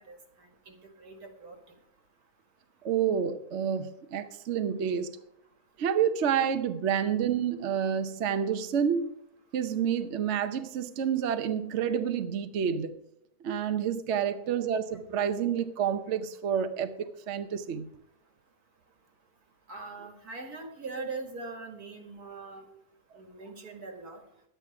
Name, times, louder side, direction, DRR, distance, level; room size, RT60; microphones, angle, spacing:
voice 1, 0.0-1.6 19.7-22.6 23.2-24.2, right 3 dB, 85° right, 4 dB, 2.6 m, -42 dB
voice 2, 2.8-5.1 5.8-9.1 9.5-12.9 13.4-16.9 17.3-17.9, right 8 dB, 55° right, 9 dB, 1.0 m, -29 dB
11.5 x 9.1 x 5.8 m, 0.77 s
omnidirectional pair, 1.6 m